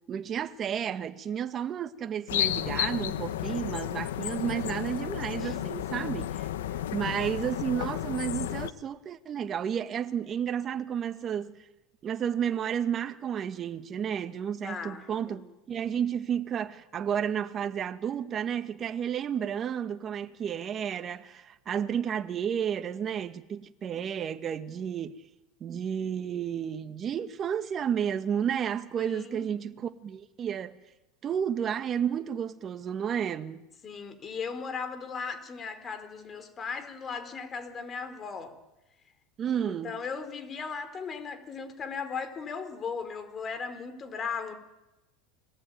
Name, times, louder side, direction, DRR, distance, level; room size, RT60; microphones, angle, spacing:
voice 1, 0.1-6.5 6.8-11.6 12.0-25.1 25.6-30.8 31.2-33.6 39.4-39.9, right 8 dB, 30° right, 1.8 m, -32 dB
sound 1, 2.3-8.7, left 12 dB, 85° left, 1.4 m, -32 dB
voice 2, 14.6-15.5 29.0-29.5 33.8-38.6 39.6-44.6, left 5 dB, 25° left, 4.4 m, -37 dB
29.5 x 21.0 x 9.5 m
supercardioid pair, 120°, 0 cm